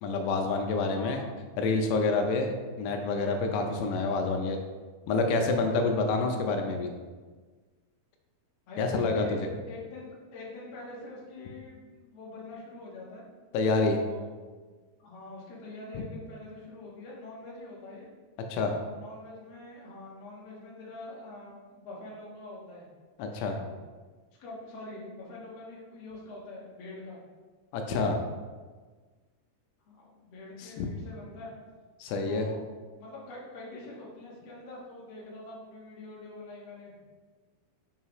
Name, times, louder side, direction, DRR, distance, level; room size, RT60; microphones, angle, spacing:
voice 1, 0.0-1.2 1.6-4.6 5.1-6.9 8.8-9.3 13.5-14.0 18.5-18.7 23.2-23.6 27.7-28.2 30.6-30.9 32.0-32.5, left 3 dB, 85° left, 4 dB, 2.8 m, -27 dB
voice 2, 0.9-1.4 8.7-9.3 9.7-13.2 14.0-14.6 15.0-18.1 18.9-22.8 23.4-23.6 24.4-27.2 29.9-31.5 32.2-32.6 32.9-37.0, left 2 dB, 60° left, -5 dB, 1.8 m, -45 dB
6.4 x 5.6 x 3.0 m, 1.4 s
omnidirectional pair, 4.7 m